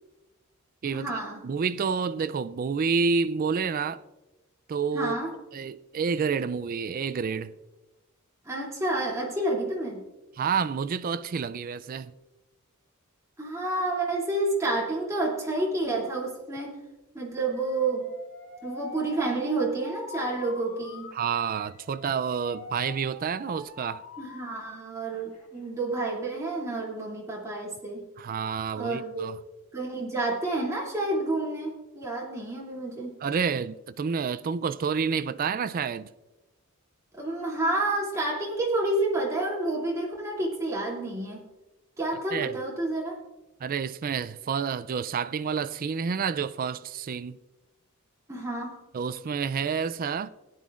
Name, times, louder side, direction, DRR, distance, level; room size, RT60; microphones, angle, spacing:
voice 1, 0.9-1.4 4.9-5.3 8.4-10.0 13.4-16.8 17.1-18.1 18.6-21.1 24.2-28.0 28.7-29.3 29.7-33.2 37.1-41.4 42.0-43.2 48.3-48.7, right 2 dB, 15° right, 2.6 m, -29 dB
voice 2, 1.4-4.0 4.7-5.2 5.5-7.5 10.4-12.1 21.1-24.0 28.2-29.4 33.2-36.1 42.3-42.5 43.6-47.4 48.9-50.3, right 6 dB, 40° right, 0.3 m, -29 dB
Alarm, 17.5-24.8 25.1-25.7, left 3 dB, 85° left, 1.9 m, -45 dB
17.0 x 10.0 x 2.5 m
head